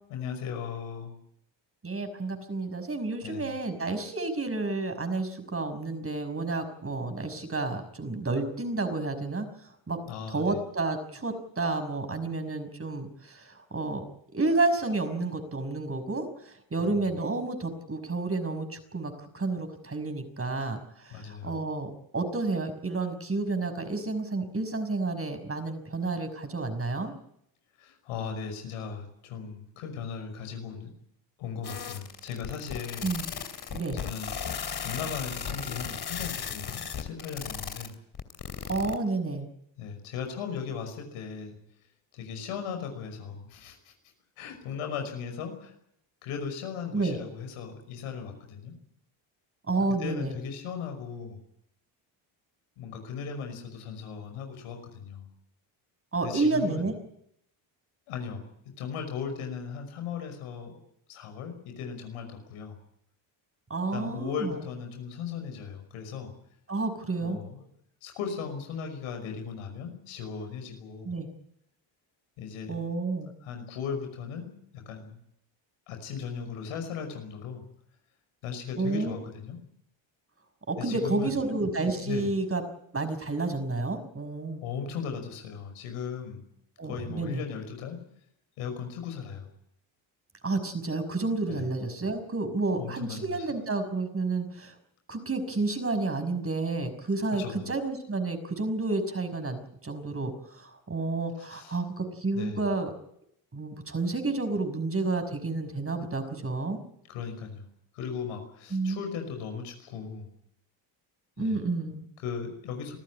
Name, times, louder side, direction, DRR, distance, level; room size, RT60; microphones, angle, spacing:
voice 1, 0.1-1.2 3.2-3.5 10.1-10.6 16.8-17.1 21.1-21.6 27.8-30.9 31.4-33.1 34.0-37.9 39.8-41.5 42.1-43.9 44.4-45.7 46.2-48.7 50.0-51.4 52.8-55.3 56.2-56.9 58.1-58.5 58.8-60.8 61.1-62.8 63.9-66.3 67.2-67.7 68.0-71.1 72.4-72.8 73.4-75.2 75.9-77.6 78.4-79.6 80.8-81.4 82.0-82.3 84.6-86.4 86.8-88.0 88.6-89.5 91.5-91.7 92.7-93.5 97.3-97.7 101.5-101.8 102.3-102.7 107.1-107.6 107.9-110.3 111.4-111.6 112.2-113.0, left 6 dB, 90° left, 5 dB, 5.8 m, -37 dB
voice 2, 1.8-9.5 9.9-10.0 10.3-14.0 14.3-16.3 16.7-20.8 21.1-27.1 33.0-33.3 33.7-34.0 38.7-39.5 46.9-47.2 49.7-50.4 56.1-56.9 63.7-64.6 66.7-67.4 71.1-71.3 72.7-73.3 78.8-79.1 80.7-82.6 82.9-84.6 86.8-87.4 90.4-94.7 95.1-102.9 103.5-106.8 108.7-109.0 111.4-112.1, right 3 dB, 25° right, 8 dB, 5.7 m, -30 dB
sound 1, 31.6-38.9, left 7 dB, 50° left, 2.9 m, -36 dB
25.5 x 14.5 x 9.9 m, 0.73 s
supercardioid pair, 75°, 49 cm